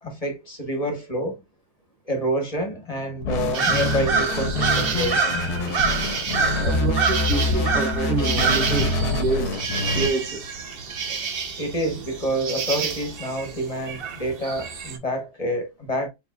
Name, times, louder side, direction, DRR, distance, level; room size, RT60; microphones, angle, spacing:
voice 1, 0.0-1.4 2.1-5.4 11.6-16.1, equal, 30° left, 1.0 m, -28 dB
sound 1, 3.2-10.1, left 2 dB, 85° left, 1.4 m, -25 dB
sound 2, 3.5-15.0, right 5 dB, 50° right, 0.7 m, -27 dB
voice 2, 6.6-10.6 11.1-11.2, right 5 dB, 90° right, 1.7 m, -27 dB
4.8 x 3.4 x 2.3 m
omnidirectional pair, 1.6 m